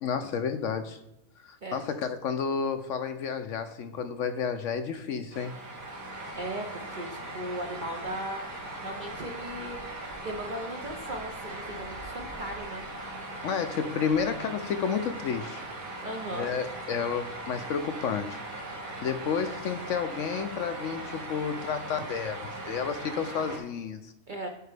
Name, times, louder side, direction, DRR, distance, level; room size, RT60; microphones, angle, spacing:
voice 1, 0.0-1.0 1.4-5.5 13.4-15.6 16.3-18.4 19.0-24.1, left 6 dB, 65° left, 9 dB, 0.8 m, -31 dB
sound 1, 5.3-23.6, right 2 dB, 65° right, 2.0 m, -39 dB
voice 2, 6.3-8.4 8.8-9.8 10.2-12.8 16.0-16.5 24.3-24.5, right 1 dB, 45° right, 3 dB, 0.7 m, -37 dB
11.5 x 4.5 x 3.4 m, 0.90 s
omnidirectional pair, 1.6 m